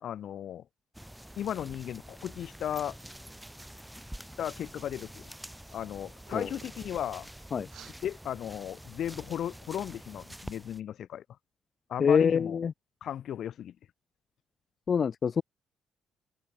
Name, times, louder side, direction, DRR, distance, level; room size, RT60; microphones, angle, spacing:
voice 1, 0.0-0.6 1.4-3.0 4.4-5.2 5.7-7.3 8.0-11.2 11.9-12.6 13.0-13.7, left 10 dB, 60° left, 0.9 m, -35 dB
sound 1, 0.9-10.8, right 1 dB, 5° right, 2.0 m, -47 dB
sound 2, 5.6-5.9 6.2-6.8 7.7-8.0, right 11 dB, 65° right, 7.0 m, -49 dB
voice 2, 12.0-12.7 14.9-15.4, left 6 dB, 40° left, 0.6 m, -25 dB
cardioid pair, 130°, 0 cm